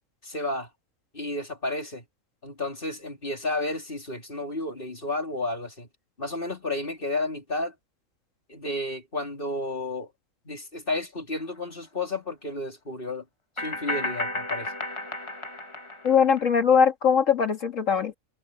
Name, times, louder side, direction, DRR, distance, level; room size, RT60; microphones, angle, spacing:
voice 1, 0.2-0.7 1.1-2.0 2.4-5.9 6.2-7.7 8.5-10.1 10.5-13.3 13.6-14.7, left 2 dB, 40° left, 3.9 m, -32 dB
sound 1, 11.5-11.6 13.6-16.4, left 1 dB, 20° left, 1.4 m, -33 dB
voice 2, 16.0-18.1, left 6 dB, 65° left, 2.1 m, -21 dB
omnidirectional pair, 1.4 m